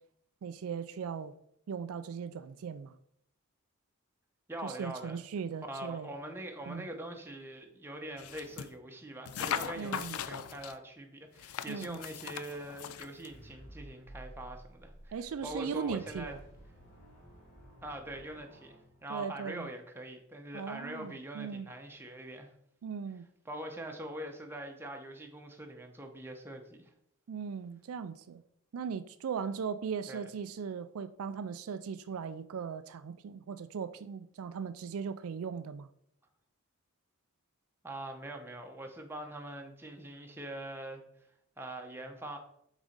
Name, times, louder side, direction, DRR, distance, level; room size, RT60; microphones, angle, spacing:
voice 1, 0.4-1.3 1.7-3.0 4.6-6.1 6.7-6.9 9.8-10.2 11.7-12.0 15.1-16.4 19.1-19.7 20.5-21.7 22.8-23.3 27.3-28.4 28.7-35.9, right 6 dB, 70° right, 0.4 m, -38 dB
voice 2, 4.5-5.2 5.6-15.1 15.4-16.4 17.8-22.5 23.5-26.9 30.1-30.2 37.8-41.0 41.6-42.4, right 1 dB, 10° right, 0.9 m, -43 dB
sound 1, 8.2-8.7 9.3-10.8 11.4-13.3, left 8 dB, 75° left, 0.4 m, -39 dB
sound 2, 13.3-19.5, equal, 40° left, 2.7 m, -53 dB
7.1 x 4.1 x 5.1 m
head